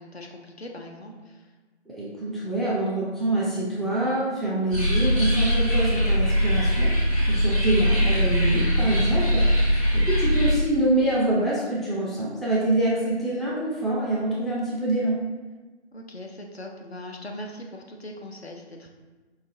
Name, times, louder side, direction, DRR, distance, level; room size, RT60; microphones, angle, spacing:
voice 1, 0.0-1.5 7.3-7.6 15.9-18.9, left 1 dB, 60° left, 2 dB, 0.5 m, -40 dB
voice 2, 1.9-6.9 7.3-15.2, right 1 dB, ahead, -7 dB, 0.4 m, -25 dB
sound 1, 4.7-10.5, equal, 30° left, 0.8 m, -21 dB
4.6 x 2.4 x 2.7 m, 1.3 s
figure-of-eight pair, 170°, 35 cm